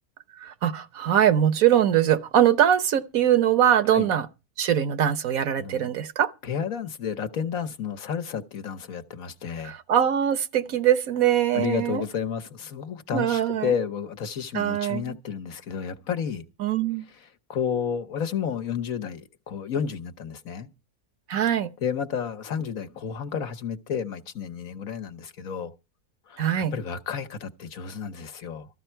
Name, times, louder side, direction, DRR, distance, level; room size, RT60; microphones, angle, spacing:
voice 1, 0.4-4.3 4.6-6.3 9.6-12.0 13.1-13.7 14.5-15.2 16.6-17.0 21.3-21.7 26.4-26.7, right 10 dB, 65° right, 1.3 m, -22 dB
voice 2, 5.5-5.9 6.4-9.8 11.5-16.4 17.1-20.7 21.8-25.7 26.3-26.4 26.7-28.7, left 7 dB, 65° left, 1.4 m, -31 dB
14.0 x 14.0 x 4.5 m
omnidirectional pair, 1.6 m